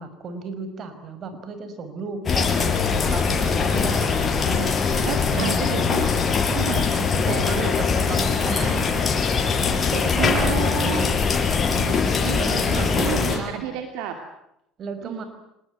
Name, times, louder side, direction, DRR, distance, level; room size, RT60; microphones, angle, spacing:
voice 1, 0.0-2.7 3.1-4.7 5.4-5.8 7.4-9.0 9.5-11.2 11.7-13.8 14.8-15.2, right 4 dB, 45° right, 9 dB, 5.5 m, -34 dB
sound 1, 2.3-13.4, left 5 dB, 35° left, 6.4 m, -22 dB
voice 2, 4.5-6.1 6.5-7.7 10.2-11.1 12.2-14.2 15.0-15.2, right 9 dB, 70° right, 5 dB, 2.7 m, -31 dB
26.0 x 20.5 x 9.5 m, 0.82 s
hypercardioid pair, 70°, 0 cm